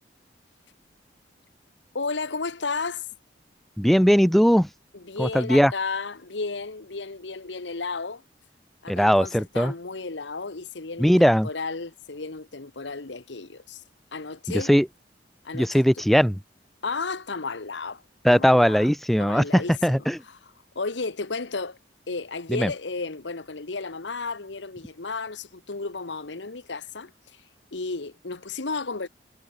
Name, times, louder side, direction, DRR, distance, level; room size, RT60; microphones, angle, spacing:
voice 1, 1.9-3.1 5.1-8.2 8.8-13.8 14.1-14.7 15.4-15.8 16.8-18.0 18.3-18.9 19.2-19.7 20.7-21.8 22.1-27.4 27.7-29.1, left 4 dB, 85° left, 1.3 m, -33 dB
voice 2, 3.8-4.7 5.2-5.7 8.9-9.7 11.0-11.5 14.5-14.9 15.5-16.4 18.2-20.2 22.5-22.7, equal, ahead, 1.2 m, -19 dB
head